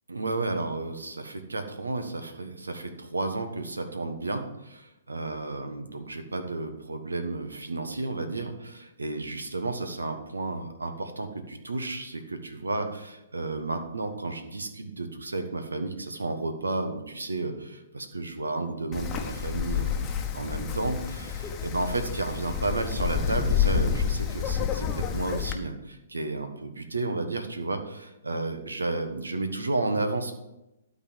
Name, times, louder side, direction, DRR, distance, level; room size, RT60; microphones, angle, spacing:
voice 1, 0.1-30.3, right 2 dB, 85° right, 7 dB, 1.3 m, -32 dB
Wind, 18.9-25.5, left 8 dB, 20° left, 1.0 m, -29 dB
12.0 x 4.1 x 7.2 m, 0.94 s
figure-of-eight pair, 125°, 0 cm